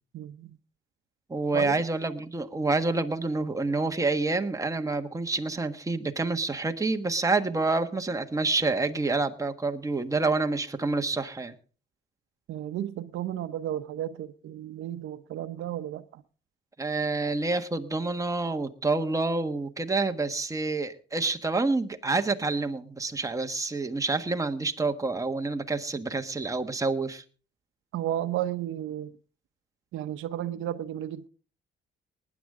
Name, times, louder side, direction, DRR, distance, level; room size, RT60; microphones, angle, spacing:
voice 1, 0.1-0.6 1.5-1.8 12.5-16.2 27.9-29.1 29.9-31.3, right 12 dB, 80° right, 0.8 m, -33 dB
voice 2, 1.3-11.5 16.8-27.2, right 3 dB, 15° right, 1.5 m, -28 dB
19.5 x 9.9 x 3.7 m
cardioid pair, 90°, 20 cm